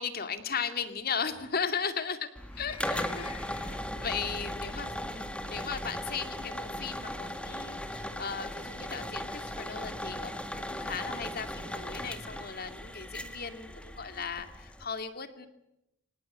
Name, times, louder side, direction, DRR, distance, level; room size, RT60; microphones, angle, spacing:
voice 1, 0.0-2.3 2.6-15.5, left 6 dB, 50° left, 9 dB, 2.3 m, -37 dB
sound 1, 2.4-14.9, left 1 dB, 5° left, 1.9 m, -38 dB
sound 2, 2.5-3.8 5.1-5.3 6.2-6.3, left 4 dB, 30° left, 2.7 m, -51 dB
25.5 x 19.0 x 9.6 m, 0.84 s
head